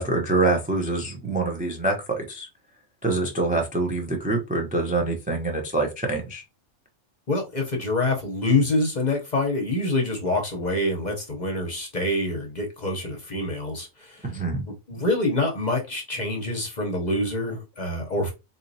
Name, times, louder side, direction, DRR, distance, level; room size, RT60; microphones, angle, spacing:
voice 1, 0.0-2.5 3.0-6.4 14.2-14.6, right 2 dB, 10° right, 0.4 m, -25 dB
voice 2, 7.3-14.3 14.9-18.3, left 2 dB, 40° left, 0.7 m, -26 dB
4.0 x 3.0 x 2.7 m
omnidirectional pair, 1.4 m